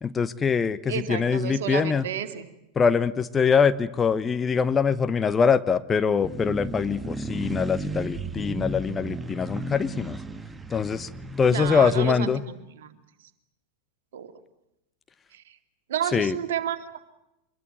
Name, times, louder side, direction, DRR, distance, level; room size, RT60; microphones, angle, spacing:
voice 1, 0.0-2.1 2.8-10.2 10.7-11.1 11.4-12.4 16.1-16.4, left 6 dB, 20° left, 13 dB, 0.9 m, -23 dB
voice 2, 0.9-2.5 11.5-12.3 12.8-12.9 14.1-14.3 15.3-15.4 15.9-17.1, right 9 dB, 55° right, 8 dB, 2.5 m, -30 dB
sound 1, 6.2-12.1, right 2 dB, 10° right, 1.3 m, -34 dB
25.0 x 22.0 x 9.5 m, 0.88 s
figure-of-eight pair, 90°, 0 cm